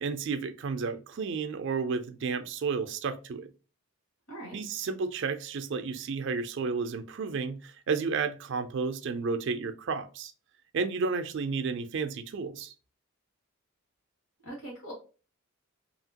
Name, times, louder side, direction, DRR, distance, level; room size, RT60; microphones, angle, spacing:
voice 1, 0.0-3.5 4.5-10.3 10.7-12.7, right 5 dB, 55° right, 0.4 m, -32 dB
voice 2, 14.4-14.9, right 1 dB, 70° left, 1.6 m, -41 dB
2.8 x 2.7 x 2.7 m
head